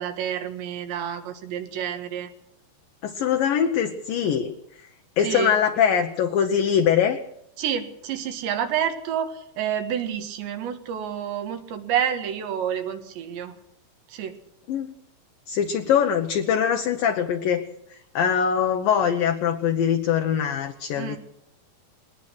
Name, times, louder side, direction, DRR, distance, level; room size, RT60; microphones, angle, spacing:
voice 1, 0.0-2.3 5.2-5.6 7.6-13.6 14.1-14.4 21.0-21.2, right 9 dB, 75° right, 6 dB, 3.9 m, -29 dB
voice 2, 3.0-4.5 5.2-7.2 14.7-14.9 15.5-17.6 18.1-21.2, left 8 dB, 70° left, 5 dB, 2.3 m, -22 dB
21.0 x 19.5 x 6.4 m, 0.74 s
omnidirectional pair, 5.2 m